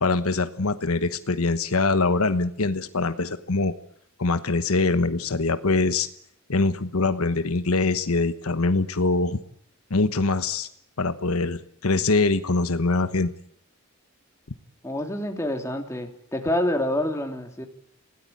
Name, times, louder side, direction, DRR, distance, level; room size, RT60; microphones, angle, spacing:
voice 1, 0.0-3.7 4.2-6.1 6.5-9.4 9.9-10.7 11.0-13.3, left 3 dB, 80° left, 10 dB, 1.1 m, -23 dB
voice 2, 14.8-17.7, left 1 dB, 15° left, 3 dB, 3.0 m, -27 dB
27.5 x 17.5 x 8.6 m, 0.73 s
head